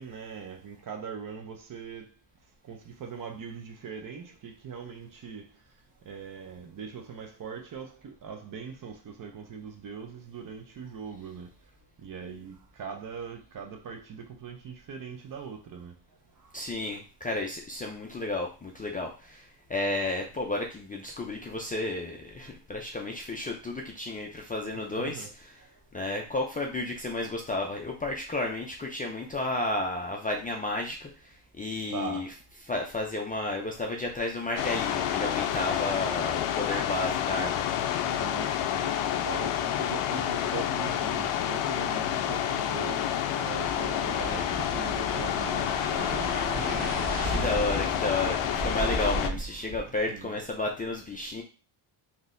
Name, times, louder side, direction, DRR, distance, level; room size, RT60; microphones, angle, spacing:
voice 1, 0.0-2.1 2.7-5.5 6.1-11.5 12.0-15.9 25.0-25.3 31.9-32.3 38.1-39.0 39.2-46.8 49.9-50.4, right 6 dB, 40° right, 0.6 m, -41 dB
voice 2, 16.5-25.3 25.9-32.3 32.7-37.6 47.2-51.4, left 2 dB, 20° left, 0.4 m, -32 dB
sound 1, 34.6-49.3, left 10 dB, 90° left, 0.6 m, -29 dB
sound 2, 43.6-49.9, right 1 dB, 20° right, 0.9 m, -35 dB
3.8 x 2.8 x 2.5 m
cardioid pair, 125°, 50 cm